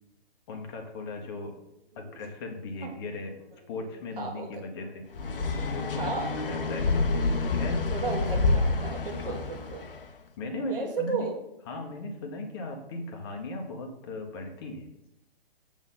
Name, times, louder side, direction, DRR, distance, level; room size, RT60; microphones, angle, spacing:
voice 1, 0.5-1.6 1.9-3.4 3.7-5.1 5.7-6.9 7.5-8.2 9.2-9.5 10.4-11.3 11.7-14.9, left 2 dB, 25° left, 3 dB, 0.9 m, -37 dB
voice 2, 4.2-4.6 6.0-6.3 7.9-9.9 10.7-11.3, right 4 dB, 60° right, 1 dB, 1.8 m, -34 dB
sound 1, 5.1-10.0, left 3 dB, 60° left, 0.8 m, -28 dB
7.1 x 3.8 x 5.8 m, 0.84 s
figure-of-eight pair, 135°, 31 cm